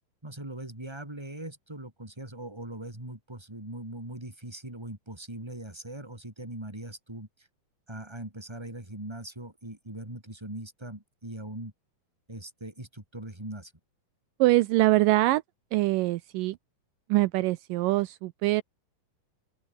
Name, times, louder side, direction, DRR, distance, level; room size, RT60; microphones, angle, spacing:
voice 1, 0.2-7.5 7.9-11.7 12.3-13.7, right 1 dB, 5° right, 4.2 m, -41 dB
voice 2, 14.4-15.4 15.7-16.6 17.1-18.6, right 18 dB, 80° right, 2.2 m, -23 dB
open air
omnidirectional pair, 4.0 m